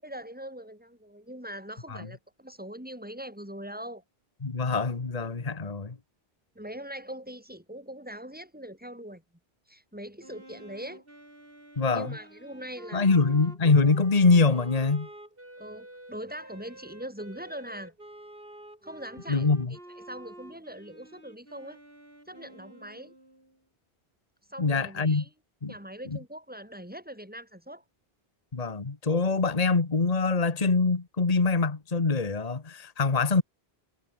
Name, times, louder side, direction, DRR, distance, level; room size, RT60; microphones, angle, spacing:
voice 1, 0.0-4.0 6.6-9.2 9.7-11.0 11.9-13.2 15.6-17.9 18.8-21.8 22.3-23.1 24.5-25.3 25.7-27.8, right 1 dB, 10° right, 7.4 m, -42 dB
voice 2, 4.4-5.9 11.8-12.1 12.9-15.1 19.3-19.7 24.6-25.2 25.6-25.7 28.5-33.4, left 4 dB, 40° left, 1.5 m, -24 dB
Wind instrument woodwind instrument, 10.2-23.6, right 1 dB, 60° right, 7.6 m, -49 dB
omnidirectional pair, 1.1 m